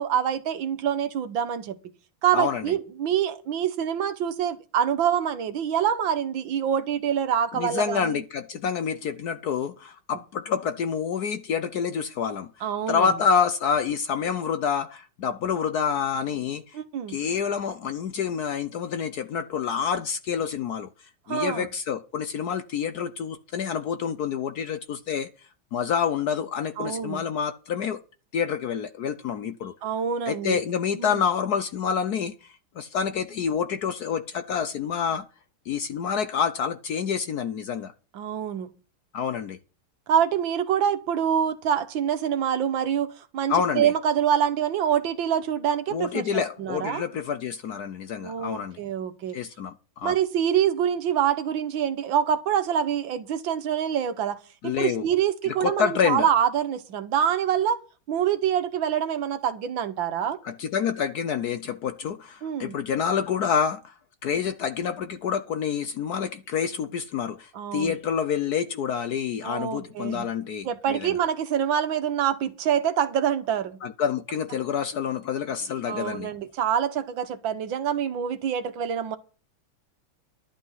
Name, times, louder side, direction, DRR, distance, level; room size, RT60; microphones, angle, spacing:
voice 1, 0.0-1.8 2.2-8.2 12.6-13.1 16.7-17.2 21.3-21.7 26.8-27.2 29.8-30.6 31.0-31.2 38.1-38.7 40.1-47.0 48.2-49.4 50.0-57.8 58.1-60.4 62.4-62.8 67.5-68.0 69.4-70.3 70.7-73.8 75.9-79.2, right 9 dB, 70° right, 1.7 m, -26 dB
voice 2, 2.3-2.7 7.5-12.5 12.9-16.8 17.1-20.9 21.3-25.3 25.7-28.0 28.3-29.7 30.3-35.2 35.7-37.9 39.1-39.6 43.5-43.9 45.9-48.8 49.3-50.2 54.6-55.1 55.4-56.3 60.4-63.9 64.2-71.2 73.8-76.3, left 7 dB, 65° left, 1.0 m, -28 dB
11.5 x 8.4 x 5.6 m
omnidirectional pair, 2.3 m